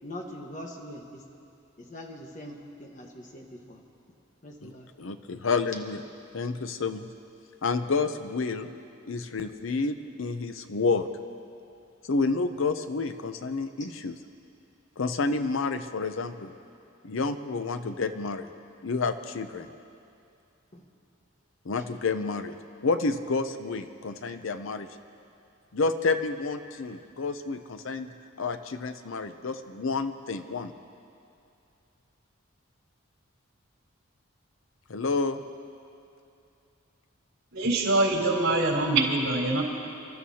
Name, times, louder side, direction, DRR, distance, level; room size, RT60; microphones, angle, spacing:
voice 1, 0.0-1.2 1.8-3.8 4.4-4.9 20.7-20.8, left 1 dB, 35° left, 1 dB, 1.4 m, -42 dB
voice 2, 5.0-6.0 6.3-7.1 7.6-8.7 9.1-11.1 12.1-14.2 15.0-16.5 17.0-18.5 18.8-19.7 21.6-22.6 22.8-24.9 25.7-28.1 28.4-30.7 34.9-35.4, left 4 dB, 70° left, 9 dB, 0.6 m, -29 dB
voice 3, 37.5-39.6, right 2 dB, 80° right, -3 dB, 3.5 m, -24 dB
29.5 x 12.5 x 2.8 m, 2.6 s
head